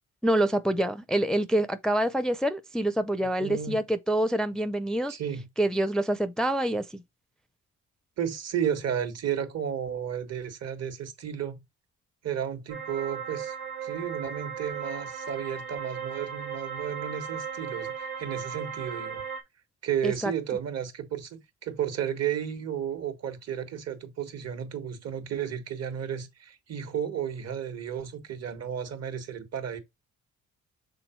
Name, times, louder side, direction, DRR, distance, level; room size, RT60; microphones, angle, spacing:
voice 1, 0.2-5.2 5.6-7.0 20.0-20.3, right 1 dB, ahead, 0.5 m, -26 dB
voice 2, 3.4-3.8 5.1-5.5 8.2-11.6 12.2-13.5 13.8-19.2 19.8-29.8, right 9 dB, 55° right, 1.6 m, -33 dB
sound 1, 12.7-19.4, right 7 dB, 85° right, 1.7 m, -36 dB
6.2 x 3.8 x 4.5 m
cardioid pair, 90°, 30 cm